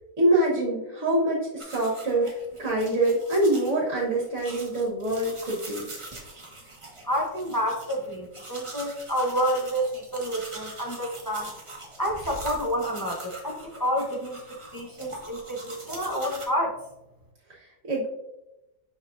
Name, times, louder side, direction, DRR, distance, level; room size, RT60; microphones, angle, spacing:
voice 1, 0.2-5.9 17.9-18.1, right 1 dB, 50° right, -4 dB, 1.6 m, -25 dB
sound 1, 1.6-16.5, right 2 dB, 20° right, 1.0 m, -43 dB
voice 2, 7.0-11.5 12.0-16.8, equal, 20° left, -1 dB, 0.5 m, -29 dB
6.2 x 6.1 x 2.5 m, 0.94 s
omnidirectional pair, 1.8 m